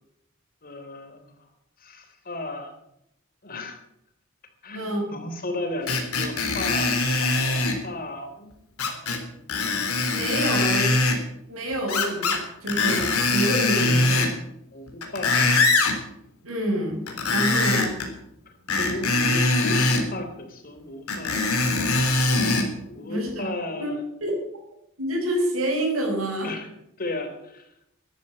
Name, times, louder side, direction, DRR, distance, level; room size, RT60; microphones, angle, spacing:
voice 1, 0.6-1.3 1.8-2.8 3.4-3.8 4.6-8.5 9.3-9.5 14.7-15.6 18.8-21.6 22.9-24.0 26.4-26.7 27.0-27.7, left 2 dB, 45° left, 6 dB, 3.3 m, -34 dB
voice 2, 4.7-5.1 10.1-11.0 11.5-13.1 13.3-14.3 16.4-17.0 17.3-17.9 23.0-23.5 23.8-23.9 24.2-24.3 25.0-26.5, right 1 dB, 75° right, 0 dB, 5.4 m, -27 dB
Screech, 5.9-7.8 8.8-9.2 9.5-11.2 11.9-12.4 12.7-14.4 14.9-16.0 17.1-18.1 18.7-20.0 21.1-22.7 23.3-23.4, left 3 dB, 90° left, 3.6 m, -22 dB
13.5 x 11.5 x 8.6 m, 0.78 s
head